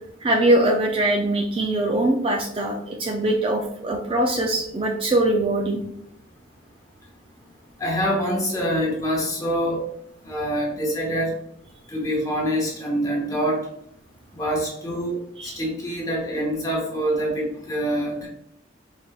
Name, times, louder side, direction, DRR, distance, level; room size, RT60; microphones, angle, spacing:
voice 1, 0.2-5.8 15.4-15.6, right 1 dB, 30° right, 2 dB, 0.3 m, -22 dB
voice 2, 7.8-9.8 10.2-11.3 11.9-13.6 14.3-15.2 15.4-18.3, equal, 20° left, -2 dB, 0.8 m, -25 dB
4.2 x 3.3 x 2.2 m, 0.76 s
head